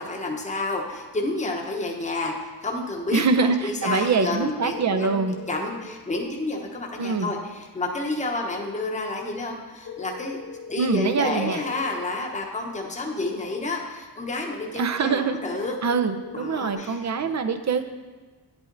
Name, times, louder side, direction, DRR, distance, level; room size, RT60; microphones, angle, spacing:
voice 1, 0.0-5.2 5.5-10.4 10.7-15.7 16.3-17.0, left 2 dB, 15° left, 0 dB, 1.0 m, -30 dB
voice 2, 3.1-5.3 7.0-7.3 10.8-11.6 14.8-15.4 15.8-17.8, right 4 dB, 40° right, 8 dB, 0.6 m, -24 dB
sound 1, 4.7-5.9 9.8-11.9 15.8-16.7, left 6 dB, 50° left, 1.2 m, -40 dB
9.7 x 8.3 x 3.9 m, 1.3 s
wide cardioid pair, 170°, 42 cm